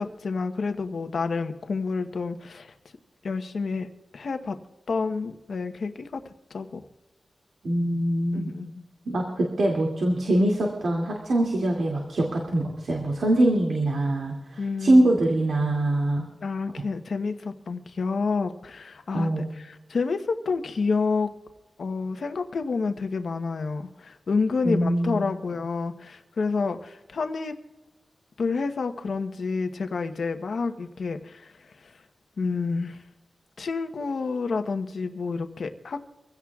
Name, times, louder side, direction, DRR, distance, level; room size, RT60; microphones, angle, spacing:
voice 1, 0.0-2.7 3.2-3.9 4.1-4.6 4.9-6.8 8.3-8.8 14.6-15.1 16.4-21.3 21.8-27.5 28.4-31.5 31.8-31.9 32.4-33.0 33.6-36.0, left 4 dB, 75° left, 7 dB, 1.0 m, -29 dB
voice 2, 7.6-8.6 9.1-16.2 19.1-19.5 24.6-25.2, right 1 dB, 80° right, -1 dB, 2.5 m, -23 dB
25.0 x 16.5 x 2.4 m, 1.0 s
wide cardioid pair, 125°, 0 cm